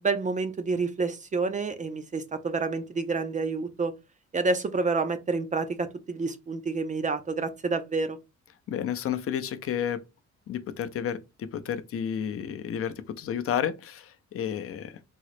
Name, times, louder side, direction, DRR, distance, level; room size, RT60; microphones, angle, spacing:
voice 1, 0.0-3.9 4.3-8.2, right 4 dB, 25° right, 0.4 m, -28 dB
voice 2, 8.7-10.0 10.5-15.0, left 9 dB, 50° left, 0.5 m, -31 dB
3.7 x 2.0 x 3.1 m
cardioid pair, 90°, 30 cm